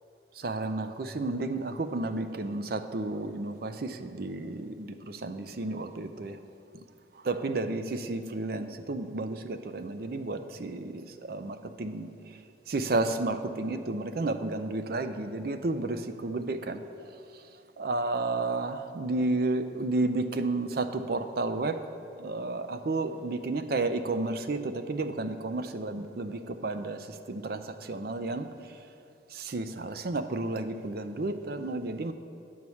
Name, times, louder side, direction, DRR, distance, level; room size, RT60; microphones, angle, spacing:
voice 1, 0.4-6.4 7.2-12.1 12.7-16.8 17.8-21.8 22.2-28.5 29.3-32.1, right 2 dB, 55° right, 9 dB, 0.5 m, -32 dB
11.0 x 4.7 x 7.0 m, 2.4 s
head